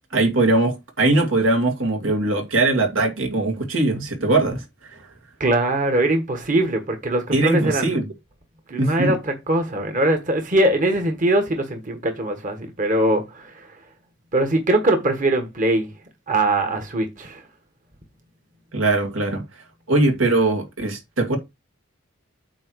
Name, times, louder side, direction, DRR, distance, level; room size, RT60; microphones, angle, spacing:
voice 1, 0.1-5.1 7.3-8.1 8.8-9.1 18.7-19.4 19.9-21.4, right 2 dB, 80° right, 2.1 m, -21 dB
voice 2, 5.4-7.9 8.7-13.7 14.3-15.9 16.3-17.4, right 1 dB, 40° right, 1.4 m, -21 dB
8.6 x 2.9 x 6.3 m
head